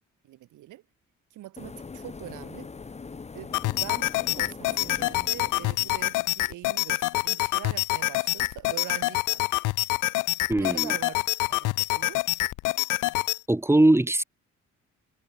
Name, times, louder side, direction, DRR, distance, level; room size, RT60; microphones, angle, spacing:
voice 1, 0.2-0.8 1.3-2.7 3.3-4.1 4.3-9.4 10.6-11.2 11.5-12.2, right 15 dB, 80° right, 1.5 m, -43 dB
sound 1, 1.6-6.3, left 4 dB, 20° left, 1.0 m, -42 dB
sound 2, 3.5-13.4, left 20 dB, 90° left, 0.5 m, -26 dB
voice 2, 10.5-10.9 13.5-14.2, right 1 dB, 10° right, 0.9 m, -21 dB
cardioid pair, 90°, 30 cm